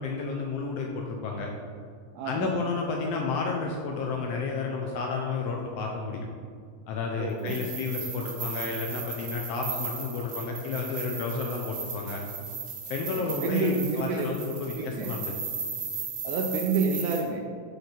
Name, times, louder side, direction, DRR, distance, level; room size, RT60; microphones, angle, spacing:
voice 1, 0.0-1.5 2.2-6.3 6.9-12.2 12.9-15.3, left 4 dB, 75° left, 1 dB, 1.5 m, -31 dB
voice 2, 2.1-2.6 7.2-7.6 13.1-14.3 14.7-15.1 16.2-17.4, right 4 dB, 80° right, 2 dB, 1.5 m, -29 dB
sound 1, 7.4-17.2, right 5 dB, 55° right, 2.0 m, -36 dB
6.1 x 5.4 x 4.4 m, 2.1 s
omnidirectional pair, 3.3 m